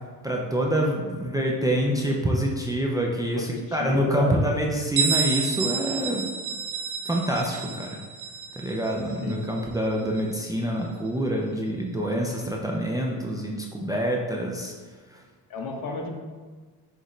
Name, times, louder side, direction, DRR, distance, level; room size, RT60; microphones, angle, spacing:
voice 1, 0.2-6.3 7.1-8.0 8.6-14.7 15.1-15.2, equal, 10° right, -1 dB, 0.4 m, -26 dB
voice 2, 3.3-4.4 9.2-9.4 15.5-16.1, left 3 dB, 55° left, 2 dB, 0.8 m, -32 dB
Bell, 5.0-10.5, right 6 dB, 50° right, 0.6 m, -30 dB
6.1 x 2.6 x 3.1 m, 1.5 s
cardioid pair, 90°, 41 cm